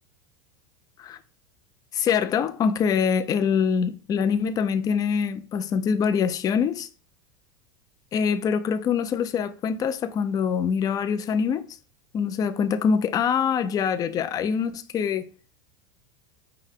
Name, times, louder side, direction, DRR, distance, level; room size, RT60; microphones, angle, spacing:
voice 1, 1.9-6.9 8.1-11.7 12.1-15.2, left 6 dB, 30° left, 0.4 m, -24 dB
5.4 x 2.1 x 3.6 m
hypercardioid pair, 100°, 12 cm